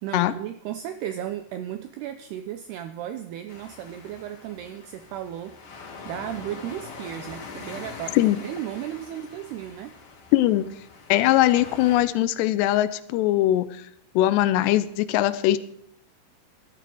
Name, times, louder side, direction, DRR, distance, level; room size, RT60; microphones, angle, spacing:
voice 1, 0.0-10.0, right 11 dB, 90° right, 9 dB, 2.3 m, -35 dB
sound 1, 3.5-12.0, left 4 dB, 45° left, 3.7 m, -43 dB
voice 2, 10.3-10.7 11.1-13.8 14.2-15.6, left 14 dB, 80° left, 14 dB, 2.5 m, -21 dB
14.5 x 12.5 x 4.7 m, 0.73 s
omnidirectional pair, 5.6 m